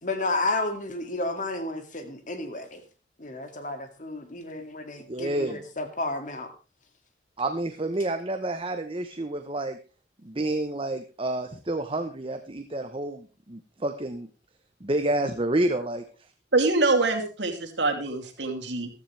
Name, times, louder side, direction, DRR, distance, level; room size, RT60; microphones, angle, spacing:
voice 1, 0.0-2.8 3.2-6.5, left 2 dB, 45° left, 7 dB, 2.3 m, -31 dB
voice 2, 5.1-5.6 7.4-9.8 10.2-14.3 14.8-16.0, right 1 dB, 30° right, 7 dB, 0.9 m, -29 dB
voice 3, 16.5-18.9, right 3 dB, 80° right, 4 dB, 2.9 m, -24 dB
15.0 x 13.5 x 3.3 m, 0.34 s
head